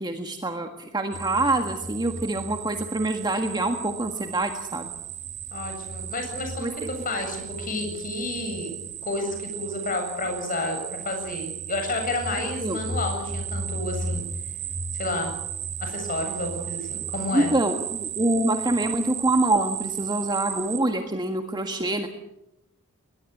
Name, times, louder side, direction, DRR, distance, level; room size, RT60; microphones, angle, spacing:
voice 1, 0.0-4.9 6.6-6.7 12.6-12.8 17.3-22.1, right 2 dB, 20° right, 5 dB, 1.6 m, -25 dB
sound 1, 1.1-20.8, right 6 dB, 50° right, 2.0 m, -34 dB
voice 2, 5.5-14.2 14.9-15.3 15.8-17.5, left 2 dB, 40° left, 4 dB, 7.6 m, -31 dB
21.5 x 20.5 x 8.5 m, 0.83 s
head